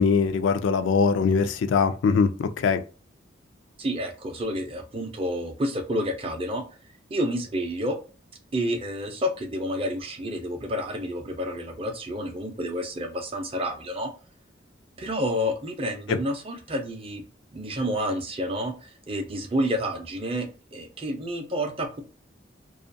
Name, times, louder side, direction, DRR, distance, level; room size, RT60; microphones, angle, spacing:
voice 1, 0.0-2.8, left 5 dB, 75° left, 0.3 m, -22 dB
voice 2, 3.8-6.6 7.1-8.0 8.5-14.1 15.0-17.2 17.5-22.0, equal, 30° right, 0.5 m, -29 dB
2.4 x 2.2 x 2.5 m
head